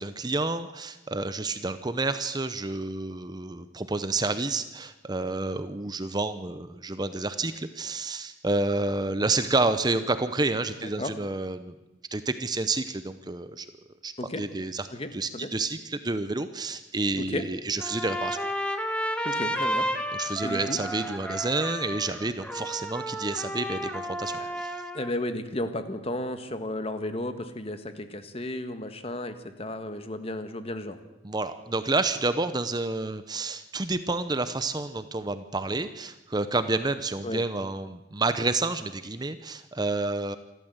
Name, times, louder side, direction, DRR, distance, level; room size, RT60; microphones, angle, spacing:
voice 1, 0.0-11.7 12.1-13.7 14.0-14.9 15.1-18.4 20.1-24.8 31.2-40.4, right 3 dB, 20° right, 11 dB, 0.7 m, -29 dB
voice 2, 10.8-11.1 14.2-14.4 14.9-15.5 17.2-17.4 19.2-19.9 20.4-20.8 24.4-24.6 24.9-31.0 37.2-37.4, left 1 dB, 30° left, 9 dB, 1.5 m, -33 dB
Trumpet, 17.8-25.1, equal, 5° left, 1.5 m, -32 dB
28.0 x 12.5 x 8.0 m, 0.97 s
head